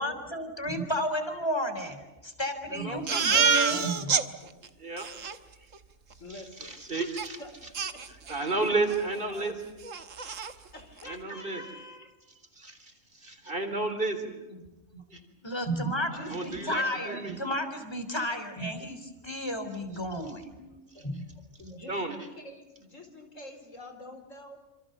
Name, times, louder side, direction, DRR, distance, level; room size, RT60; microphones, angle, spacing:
voice 1, 0.0-1.9 2.4-4.4 15.1-20.8 21.0-21.3, equal, 20° left, 8 dB, 3.7 m, -32 dB
voice 2, 2.7-3.5 4.8-5.1 6.3-7.4 8.3-9.6 11.0-11.6 12.6-14.4 15.1-15.2 16.3-17.4 21.9-22.2, right 3 dB, 45° right, 7 dB, 3.8 m, -32 dB
Crying sobbing, 3.1-4.2 4.6-4.7 5.0-5.4 7.2-7.3 7.7-8.5 8.9-9.1 9.4-9.5 9.8-10.5, right 5 dB, 80° right, 1.7 m, -27 dB
voice 3, 6.2-6.8 7.4-8.1 9.0-9.5 10.7-12.1 14.5-14.7 15.2-15.4 16.0-17.0 18.7-18.9 19.3-19.4 20.1-20.2 20.5-21.2 21.6-24.6, left 1 dB, 80° left, 6 dB, 4.7 m, -47 dB
27.5 x 27.0 x 6.8 m, 1.1 s
omnidirectional pair, 1.3 m